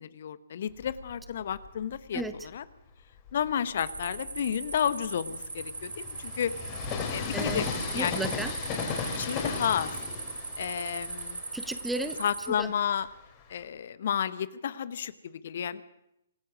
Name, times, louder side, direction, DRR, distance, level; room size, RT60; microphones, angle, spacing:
voice 1, 0.0-2.6 3.3-6.5 7.1-8.2 9.0-10.0 10.6-11.4 12.2-13.1 13.5-15.8, left 8 dB, 50° left, 15 dB, 1.2 m, -32 dB
Train, 0.7-2.4 3.0-13.6, left 5 dB, 25° left, 4.4 m, -37 dB
sound 1, 3.8-12.5, right 4 dB, 70° right, 2.8 m, -39 dB
voice 2, 7.3-7.7 7.9-8.5 11.5-12.2 12.6-12.7, right 2 dB, 5° right, 10 dB, 1.2 m, -34 dB
26.0 x 16.5 x 6.2 m, 0.80 s
figure-of-eight pair, 125°, 0 cm